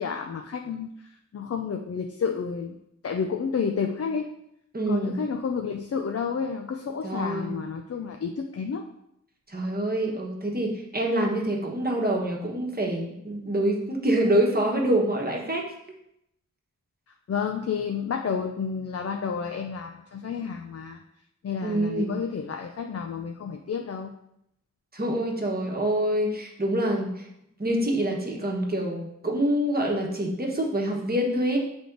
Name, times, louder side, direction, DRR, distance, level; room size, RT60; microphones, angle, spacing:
voice 1, 0.0-2.8 3.0-4.3 4.9-8.9 17.3-21.0 21.4-24.1, left 6 dB, 55° left, 4 dB, 0.5 m, -30 dB
voice 2, 4.7-5.2 7.0-7.5 9.5-15.6 21.6-22.1 24.9-27.1 27.6-31.6, right 1 dB, 30° right, -1 dB, 1.2 m, -26 dB
7.4 x 3.5 x 3.8 m, 0.79 s
wide cardioid pair, 85°, 30 cm